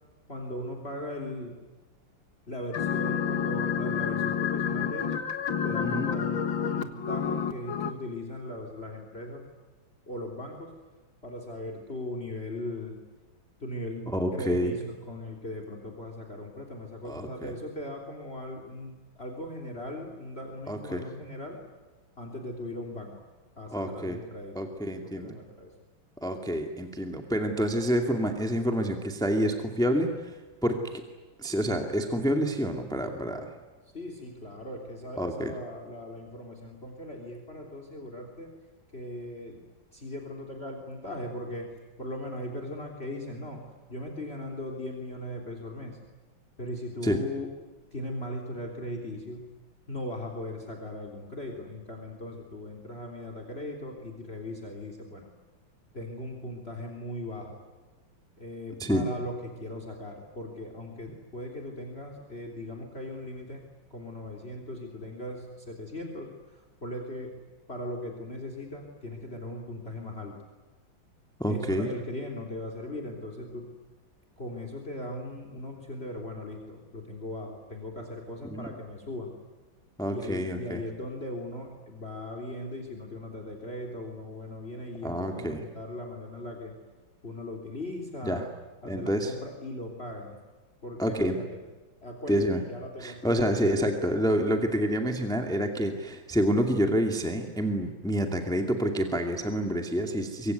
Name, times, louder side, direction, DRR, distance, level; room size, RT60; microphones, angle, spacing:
voice 1, 0.3-1.6 2.4-5.2 5.6-9.5 10.1-10.7 11.2-13.0 13.6-21.6 22.2-23.1 23.6-25.7 33.8-38.5 38.9-39.6 39.9-43.6 43.9-46.0 46.6-47.5 47.9-49.4 49.9-55.3 55.9-57.6 58.4-63.6 63.9-67.4 67.7-70.4 71.4-73.7 74.4-79.4 80.1-86.8 87.2-88.5 88.8-90.4 90.8-91.6 92.0-93.4 100.0-100.2, left 1 dB, 30° left, 4 dB, 3.6 m, -39 dB
sound 1, 2.7-7.9, left 8 dB, 70° left, 2.3 m, -29 dB
voice 2, 5.8-6.1 14.1-14.7 17.1-17.5 20.7-21.0 23.7-24.2 24.6-25.4 26.2-30.4 30.6-31.0 31.4-33.5 35.2-35.5 47.0-47.2 58.8-59.0 71.4-71.9 78.4-78.7 80.0-80.8 85.0-85.6 88.2-88.4 88.9-89.3 91.0-91.4 92.3-92.6 93.0-100.5, equal, ahead, 4 dB, 2.2 m, -28 dB
25.5 x 24.0 x 9.4 m, 1.2 s
omnidirectional pair, 2.2 m